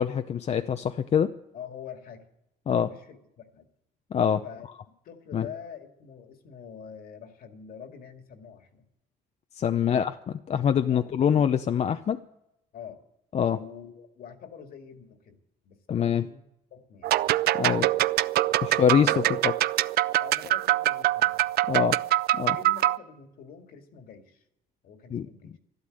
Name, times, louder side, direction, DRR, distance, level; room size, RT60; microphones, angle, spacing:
voice 1, 0.0-1.3 2.7-2.9 4.1-4.4 5.3-5.5 9.5-10.1 10.5-12.2 13.3-13.6 15.9-16.2 17.6-17.9 18.6-19.5 21.7-22.0 22.3-22.6 25.1-25.3, left 8 dB, 40° left, 8 dB, 0.6 m, -24 dB
voice 2, 1.5-2.3 2.8-3.7 4.4-8.8 9.7-10.0 10.9-11.0 12.7-13.0 13.5-16.4 16.7-18.1 18.4-19.3 20.2-21.5 22.5-24.4 24.8-25.6, left 7 dB, 60° left, 5 dB, 2.1 m, -46 dB
sound 1, 17.0-23.0, right 15 dB, 65° right, 0.5 m, -24 dB
13.0 x 12.0 x 7.7 m, 0.82 s
cardioid pair, 110°, 17 cm